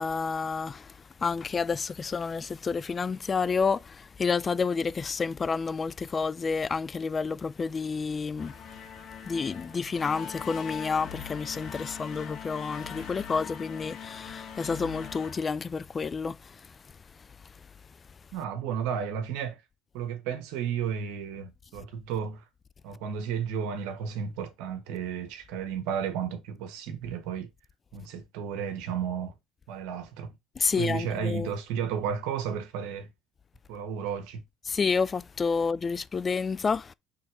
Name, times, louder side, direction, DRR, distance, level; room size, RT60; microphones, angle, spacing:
voice 1, 0.0-8.6 9.2-16.8 17.2-17.7 30.6-31.5 34.7-36.9, left 5 dB, 30° left, 0.4 m, -30 dB
sound 1, 8.4-16.2, left 8 dB, 55° left, 1.8 m, -42 dB
voice 2, 18.3-19.6 19.9-22.4 22.8-27.5 27.9-29.4 29.7-30.3 30.8-33.1 33.7-34.4, right 7 dB, 75° right, 1.4 m, -33 dB
5.6 x 3.5 x 4.8 m
supercardioid pair, 80°, 0 cm